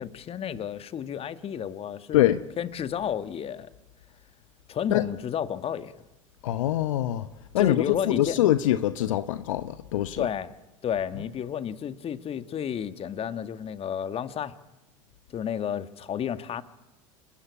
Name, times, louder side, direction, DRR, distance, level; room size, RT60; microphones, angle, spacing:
voice 1, 0.0-2.3 2.6-3.7 4.7-5.9 7.6-8.4 10.2-10.5 10.8-14.5 15.3-16.6, left 8 dB, 35° left, 1.6 m, -31 dB
voice 2, 6.4-7.3 7.5-10.3, left 13 dB, 70° left, 1.0 m, -24 dB
28.0 x 20.5 x 8.6 m
hypercardioid pair, 80°, 17 cm